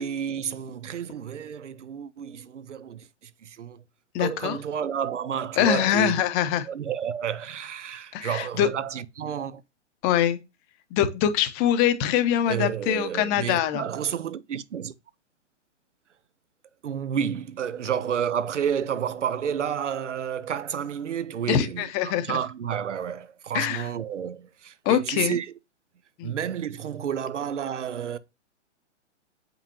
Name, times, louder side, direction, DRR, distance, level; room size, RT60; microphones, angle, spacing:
voice 1, 0.0-3.1 3.4-3.8 4.2-6.2 6.7-9.6 12.5-14.9 16.8-25.5 26.2-28.2, right 8 dB, 80° right, 0.8 m, -30 dB
voice 2, 4.1-4.6 5.6-6.7 8.1-8.7 10.0-10.4 10.9-13.8 21.5-22.4 23.5-23.9 24.8-25.4 26.2-26.3, left 10 dB, 25° left, 0.8 m, -23 dB
7.4 x 5.4 x 2.8 m
hypercardioid pair, 130°, 36 cm